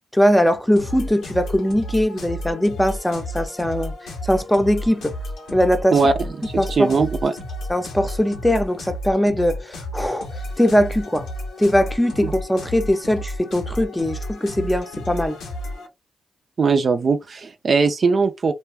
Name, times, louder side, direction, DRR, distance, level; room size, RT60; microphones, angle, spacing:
voice 1, 0.1-3.9 4.3-5.1 5.5-6.0 6.6-6.9 7.7-10.3 10.6-11.3 11.6-15.4, equal, 10° left, 0.6 m, -20 dB
sound 1, 0.7-15.9, left 1 dB, 85° left, 0.9 m, -32 dB
voice 2, 5.9-6.3 6.7-7.3 12.2-12.3 16.6-18.5, right 4 dB, 55° right, 0.4 m, -19 dB
2.6 x 2.2 x 3.4 m
supercardioid pair, 50°, 0 cm